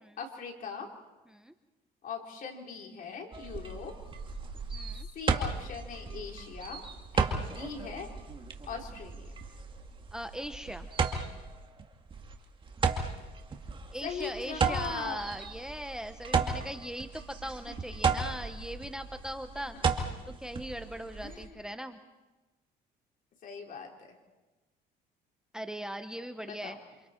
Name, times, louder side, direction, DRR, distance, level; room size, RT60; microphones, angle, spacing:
voice 1, 0.2-0.9 2.0-3.9 5.1-6.8 7.1-8.1 8.7-9.3 14.0-15.2 17.4-17.8 19.7-20.0 21.2-21.6 23.4-24.1 26.4-26.8, left 5 dB, 55° left, 1 dB, 4.3 m, -40 dB
sound 1, 3.3-21.5, right 4 dB, 30° right, 2.3 m, -34 dB
voice 2, 4.7-5.1 10.1-10.9 13.9-19.8 20.3-22.0 25.5-26.8, equal, 5° right, 8 dB, 1.0 m, -39 dB
29.0 x 27.0 x 4.6 m, 1.1 s
cardioid pair, 110°, 17 cm